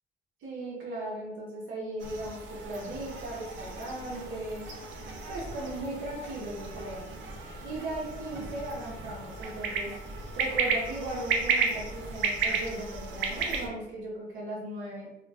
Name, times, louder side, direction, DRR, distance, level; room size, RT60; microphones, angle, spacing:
voice 1, 0.4-4.7 5.3-7.1 7.6-9.9 10.3-15.1, right 1 dB, 90° right, -4 dB, 0.9 m, -37 dB
sound 1, 2.0-13.7, right 4 dB, 75° right, 0.5 m, -34 dB
sound 2, 3.4-12.0, left 1 dB, 25° left, 0.6 m, -51 dB
2.4 x 2.2 x 3.2 m, 0.95 s
cardioid pair, 90°, 20 cm